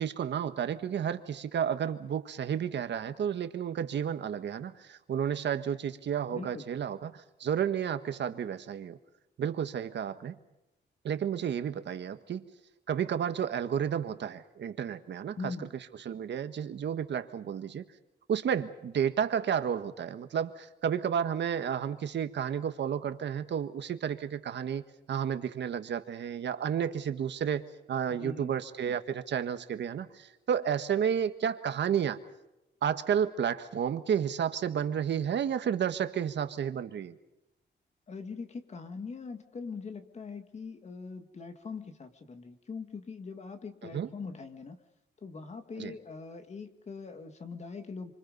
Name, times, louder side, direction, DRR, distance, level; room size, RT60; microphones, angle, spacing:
voice 1, 0.0-9.0 9.4-10.4 11.0-12.4 12.9-15.5 16.0-17.9 18.3-24.8 25.1-32.2 32.8-37.1 43.9-44.1 45.8-45.9, right 8 dB, 70° right, 9 dB, 1.6 m, -31 dB
voice 2, 6.3-6.7 15.4-15.7 28.2-28.5 38.1-44.8 45.2-48.1, left 4 dB, 35° left, 7 dB, 2.1 m, -42 dB
27.5 x 26.0 x 5.4 m, 0.91 s
wide cardioid pair, 180°, 19 cm